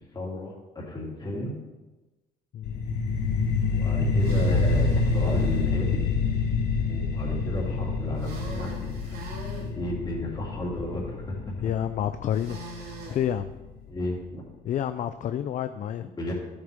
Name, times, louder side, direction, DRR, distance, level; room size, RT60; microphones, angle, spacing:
voice 1, 0.0-1.6 3.7-6.0 6.9-9.2 9.6-11.3 13.9-14.4 16.0-16.3, left 1 dB, 25° left, -4 dB, 3.6 m, -33 dB
sound 1, 2.6-13.6, left 4 dB, 80° left, 1.4 m, -27 dB
sound 2, 4.1-5.6 8.2-9.7 12.3-13.2, right 2 dB, 70° right, 3.5 m, -43 dB
voice 2, 11.6-12.6 13.1-13.5 14.6-16.1, left 10 dB, 50° left, 11 dB, 0.4 m, -29 dB
12.0 x 8.0 x 3.6 m, 1.1 s
cardioid pair, 110°, 17 cm